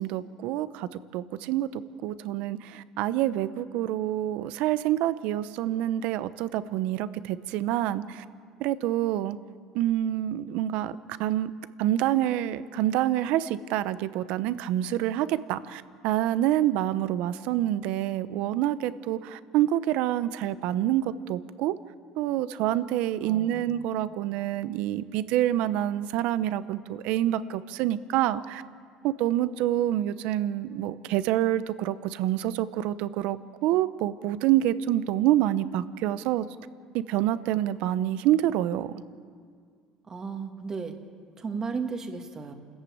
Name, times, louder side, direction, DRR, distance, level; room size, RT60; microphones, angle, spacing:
voice 1, 0.0-8.2 8.6-9.4 9.7-11.5 11.8-21.7 22.2-28.6 29.0-33.4 33.6-36.5 36.9-38.9, right 13 dB, 70° right, 14 dB, 0.9 m, -27 dB
voice 2, 23.2-23.7 40.1-41.0 41.4-42.5, right 5 dB, 25° right, 5 dB, 2.2 m, -34 dB
28.5 x 14.0 x 8.8 m, 2.1 s
cardioid pair, 125°, 2 cm